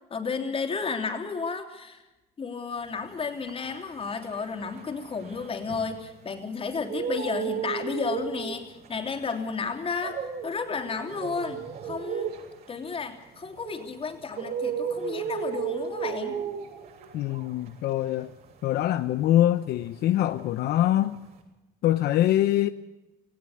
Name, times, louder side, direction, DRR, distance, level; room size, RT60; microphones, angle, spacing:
voice 1, 0.1-2.0 2.4-10.2 10.4-12.3 12.7-16.4, left 5 dB, 35° left, 3.3 m, -32 dB
sound 1, 3.0-6.3 6.6-20.1 20.3-21.4, right 7 dB, 70° right, 7.3 m, -35 dB
voice 2, 17.1-18.3 18.6-21.2 21.8-22.7, left 13 dB, 75° left, 0.8 m, -24 dB
19.0 x 16.5 x 8.4 m
cardioid pair, 110°, 17 cm